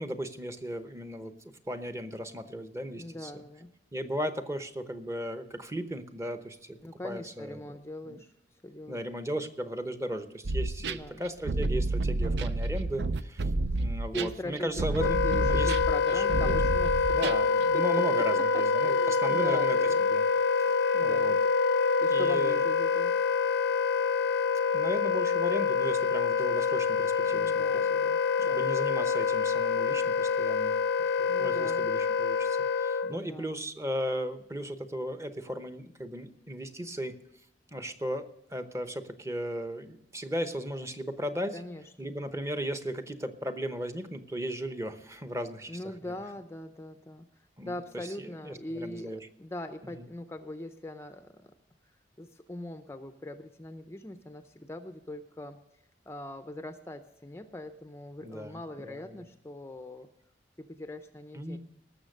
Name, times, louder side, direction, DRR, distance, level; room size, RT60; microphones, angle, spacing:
voice 1, 0.0-1.3 1.7-3.4 3.9-6.8 7.0-7.8 8.0-8.2 8.9-13.5 13.8-15.2 15.5-15.7 16.1-16.6 17.1-19.8 20.1-20.2 20.6-21.4 22.1-22.6 22.9-23.0 24.7-27.9 28.5-30.8 31.2-37.1 37.7-41.6 42.0-45.8 47.6-49.3 50.0-50.1 58.2-59.3 61.3-61.6, equal, 15° right, 9 dB, 0.8 m, -36 dB
voice 2, 3.0-3.7 6.8-8.3 8.6-9.0 10.8-11.2 13.7-17.3 17.7-17.8 18.3-20.1 20.6-21.4 22.0-23.2 27.2-28.6 31.3-31.9 33.0-33.5 41.5-42.1 45.7-47.3 47.6-51.5 52.2-55.6 56.1-60.1 60.6-61.6, left 1 dB, 15° left, 8 dB, 0.5 m, -41 dB
sound 1, 10.4-17.6, right 2 dB, 70° right, 0.5 m, -30 dB
Wind instrument woodwind instrument, 15.0-33.2, left 5 dB, 70° left, 0.5 m, -26 dB
18.5 x 6.9 x 6.5 m, 0.81 s
head